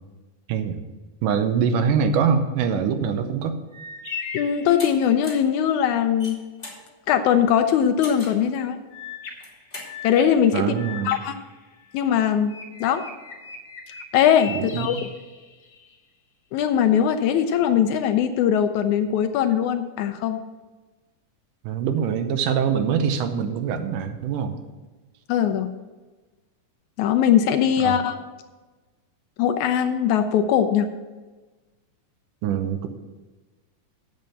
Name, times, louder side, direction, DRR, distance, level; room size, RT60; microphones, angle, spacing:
voice 1, 1.2-3.6 10.5-11.1 14.5-15.0 21.6-24.6 27.8-28.0 32.4-32.9, right 7 dB, 80° right, 8 dB, 2.3 m, -24 dB
sound 1, 3.7-5.4 8.9-12.1 12.5-15.9, left 6 dB, 50° left, 1.2 m, -39 dB
voice 2, 4.3-6.4 7.1-8.8 10.0-10.8 11.0-11.3 11.9-13.0 13.9-15.0 16.5-20.4 25.3-25.7 27.0-28.2 29.4-30.9, left 9 dB, 80° left, 8 dB, 1.8 m, -21 dB
sound 2, 4.8-4.9 5.2-5.5 6.0-6.8 8.0-8.4 9.3-9.9, left 2 dB, 15° left, 2.1 m, -38 dB
8.5 x 6.5 x 7.1 m, 1.2 s
omnidirectional pair, 3.8 m